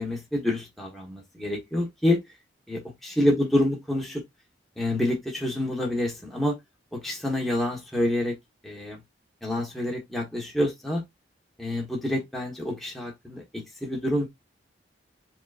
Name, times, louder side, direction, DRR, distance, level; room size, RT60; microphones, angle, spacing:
voice 1, 0.0-2.2 2.7-4.2 4.8-6.6 6.9-8.3 8.6-9.0 9.4-11.0 11.6-14.3, left 1 dB, ahead, 1.2 m, -27 dB
5.1 x 3.8 x 2.5 m
head